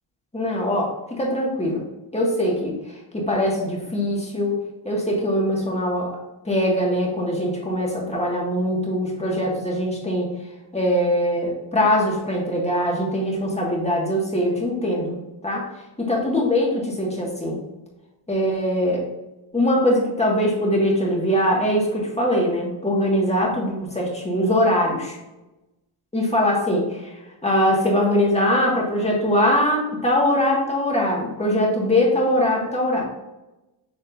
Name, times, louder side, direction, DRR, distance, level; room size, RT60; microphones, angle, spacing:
voice 1, 0.3-1.8 2.1-2.8 3.1-6.2 6.4-10.3 10.7-15.1 15.4-15.7 16.0-17.6 18.3-19.0 19.5-25.2 26.1-27.1 27.4-33.1, equal, 15° left, -2 dB, 1.7 m, -22 dB
7.4 x 6.3 x 2.6 m, 1.0 s
wide cardioid pair, 180°, 50 cm